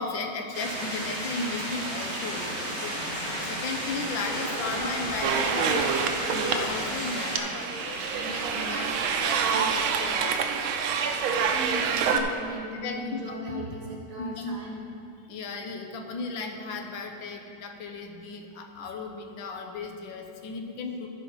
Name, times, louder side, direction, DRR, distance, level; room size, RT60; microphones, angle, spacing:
voice 1, 0.0-10.6 12.1-12.3 12.8-13.7 14.2-14.6 15.3-21.1, left 3 dB, 75° left, 4 dB, 1.5 m, -36 dB
sound 1, 0.5-7.4, right 1 dB, 30° right, 2.8 m, -33 dB
sound 2, 2.8-9.2, equal, 20° left, 2.7 m, -41 dB
sound 3, 5.2-12.2, right 6 dB, 85° right, 1.5 m, -27 dB
voice 2, 11.5-14.9, right 1 dB, 50° right, -1 dB, 1.3 m, -38 dB
14.5 x 5.1 x 5.1 m, 2.5 s
omnidirectional pair, 2.2 m